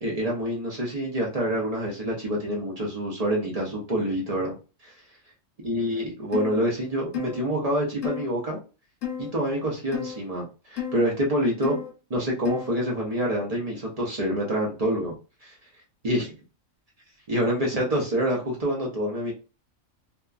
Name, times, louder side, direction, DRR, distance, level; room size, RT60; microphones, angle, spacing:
voice 1, 0.0-4.5 4.8-4.9 5.6-8.6 9.2-11.8 12.1-15.1 15.4-15.5 16.0-16.3 17.3-19.3, equal, 45° right, -2 dB, 0.5 m, -26 dB
sound 1, 6.3-6.6 7.1-7.4 8.0-8.2 9.0-9.3 9.9-10.2 10.8-11.0 11.6-11.9 12.5-12.8, left 9 dB, 80° left, 1.0 m, -31 dB
2.7 x 2.2 x 2.3 m, 0.32 s
omnidirectional pair, 1.3 m